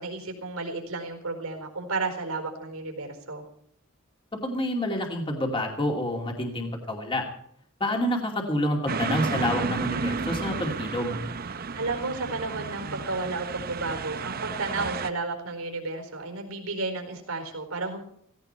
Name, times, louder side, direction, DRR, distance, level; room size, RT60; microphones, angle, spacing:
voice 1, 0.0-3.4 11.7-18.0, right 3 dB, 80° right, 4 dB, 4.5 m, -32 dB
voice 2, 4.4-7.2 7.8-11.2, left 1 dB, 25° left, 1 dB, 2.5 m, -28 dB
sound 1, 8.9-15.1, right 4 dB, 45° right, 0.7 m, -32 dB
17.0 x 17.0 x 4.5 m, 0.66 s
head